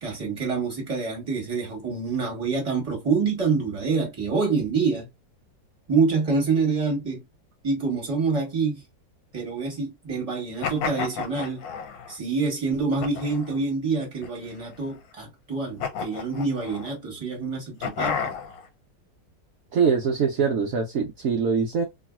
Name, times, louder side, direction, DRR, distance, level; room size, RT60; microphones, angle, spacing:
voice 1, 0.0-5.1 5.9-7.2 7.6-8.8 9.3-11.6 12.1-18.3, right 4 dB, 20° right, 1.5 m, -26 dB
sound 1, 10.6-12.1 13.0-13.6 14.2-14.9 15.8-16.9 17.8-18.7, left 6 dB, 80° left, 1.4 m, -32 dB
voice 2, 19.7-21.8, right 6 dB, 65° right, 0.8 m, -23 dB
3.1 x 2.7 x 2.2 m
omnidirectional pair, 2.0 m